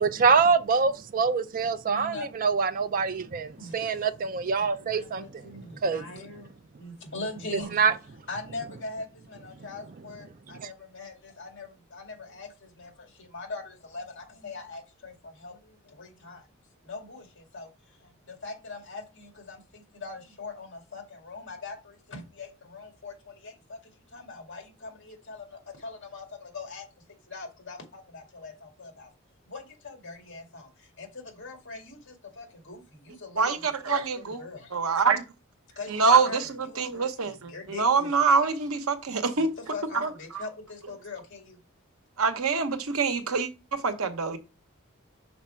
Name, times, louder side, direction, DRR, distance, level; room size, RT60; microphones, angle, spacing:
voice 1, 0.0-5.2 5.8-6.0 7.7-7.9, right 5 dB, 40° right, 0.4 m, -25 dB
voice 2, 1.9-2.3 3.6-4.2 4.8-6.5 6.8-7.8 8.3-16.5 16.8-23.8 24.1-26.9 27.3-29.1 29.5-34.7 35.8-38.1 39.4-39.5 39.7-41.6, left 3 dB, 60° left, 2.1 m, -42 dB
voice 3, 33.4-34.4 34.7-35.2 35.9-39.5 39.9-40.4 42.2-44.4, right 5 dB, 80° right, 0.9 m, -25 dB
5.9 x 4.3 x 4.4 m
head